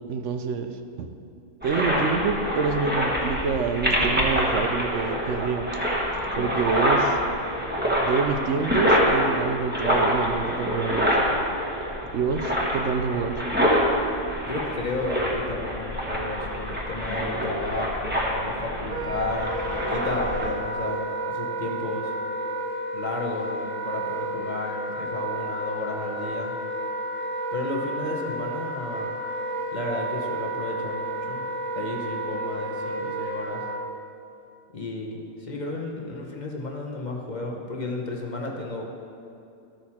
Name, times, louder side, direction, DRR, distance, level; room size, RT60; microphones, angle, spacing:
voice 1, 0.1-0.7 1.0-1.1 1.6-5.7 6.4-7.2 8.0-11.1 12.1-13.3, right 5 dB, 65° right, 7 dB, 0.8 m, -27 dB
sound 1, 1.6-20.5, equal, 5° right, 1.2 m, -26 dB
voice 2, 14.4-22.1 22.9-26.5 27.5-29.2 29.7-31.5 31.8-33.6 34.7-38.8, left 2 dB, 35° left, 0 dB, 0.8 m, -33 dB
Wind instrument woodwind instrument, 18.8-33.8, right 1 dB, 30° right, 0.7 m, -31 dB
13.0 x 6.3 x 4.3 m, 2.6 s
omnidirectional pair, 1.5 m